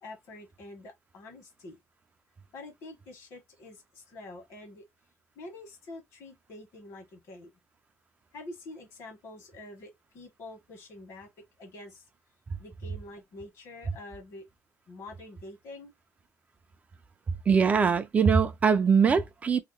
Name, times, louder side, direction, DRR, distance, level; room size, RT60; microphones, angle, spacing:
voice 1, 0.0-1.8 2.5-4.8 5.3-7.5 8.3-11.3 11.6-12.0 12.6-14.5 14.9-15.9, left 2 dB, 60° left, 1.4 m, -46 dB
voice 2, 17.5-19.6, right 6 dB, 25° right, 0.4 m, -22 dB
2.8 x 2.1 x 3.9 m
cardioid pair, 145°, 5 cm